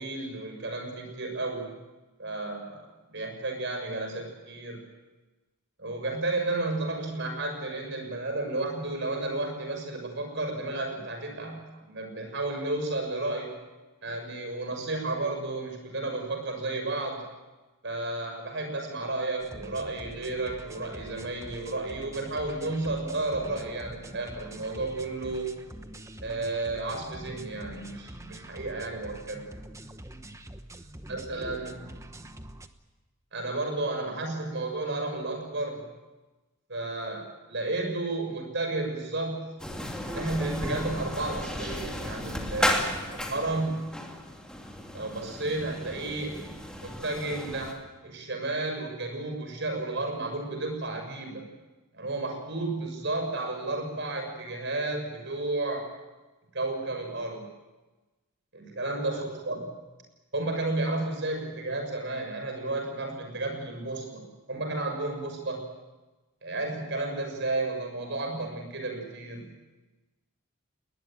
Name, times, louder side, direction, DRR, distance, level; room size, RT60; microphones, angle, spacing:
voice 1, 0.0-1.7 2.2-2.8 3.1-4.8 5.8-13.5 14.0-17.2 17.8-25.5 26.2-29.4 31.1-31.9 33.3-35.9 36.7-39.6 40.1-43.9 44.9-46.4 46.8-47.8 48.0-51.4 51.9-55.8 56.5-57.4 58.5-59.7 60.3-64.2 64.5-65.6 66.4-69.5, right 2 dB, 55° right, 4 dB, 6.4 m, -32 dB
sound 1, 19.4-32.7, right 1 dB, 15° right, 1.0 m, -45 dB
sound 2, 39.6-47.7, left 1 dB, 5° left, 2.7 m, -34 dB
21.0 x 20.0 x 9.1 m, 1.1 s
head